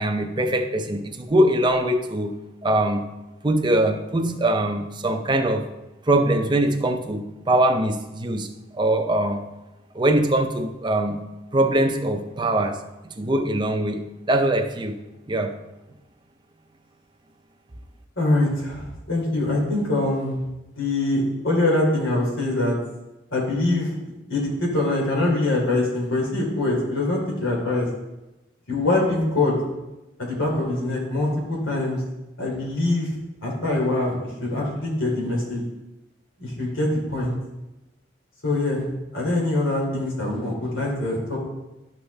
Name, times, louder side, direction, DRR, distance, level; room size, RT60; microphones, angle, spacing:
voice 1, 0.0-2.3 2.6-3.0 3.4-5.7 6.1-8.5 8.7-9.4 9.9-11.2 11.5-12.8 13.0-15.0 15.3-15.5, right 1 dB, 25° right, 5 dB, 0.6 m, -22 dB
voice 2, 18.2-20.4 20.7-22.8 23.3-23.9 24.3-27.9 28.7-29.6 30.2-32.0 32.4-33.1 33.4-35.6 36.4-37.3 38.4-41.4, left 2 dB, 90° left, -2 dB, 3.0 m, -23 dB
12.0 x 5.6 x 3.5 m, 1.0 s
head